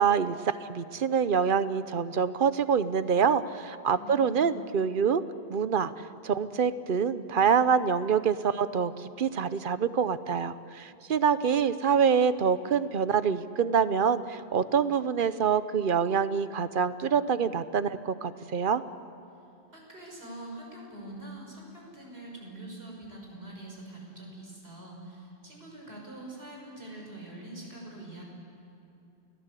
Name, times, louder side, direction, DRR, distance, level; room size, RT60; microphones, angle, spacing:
voice 1, 0.0-5.2 5.5-5.9 6.2-18.8, right 6 dB, 60° right, 13 dB, 1.0 m, -26 dB
voice 2, 3.9-4.5 19.7-28.2, right 2 dB, 80° right, -1 dB, 6.4 m, -44 dB
29.0 x 18.0 x 8.3 m, 2.7 s
omnidirectional pair, 1.0 m